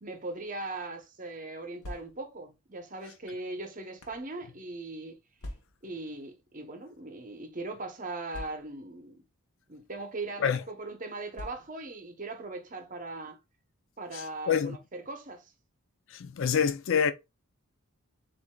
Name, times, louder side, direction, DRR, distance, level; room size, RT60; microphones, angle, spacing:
voice 1, 0.0-5.2 5.8-9.2 9.7-13.4 14.0-15.5, right 2 dB, 35° right, 0.8 m, -39 dB
sound 1, 1.8-2.5 3.3-4.3 5.4-6.0 6.9-7.0 7.3-7.4 8.3-9.0 9.9-10.1 11.3-12.0, left 1 dB, 80° left, 0.9 m, -45 dB
voice 2, 14.1-14.8 16.1-17.1, left 7 dB, 55° left, 0.4 m, -27 dB
7.3 x 2.6 x 2.3 m
head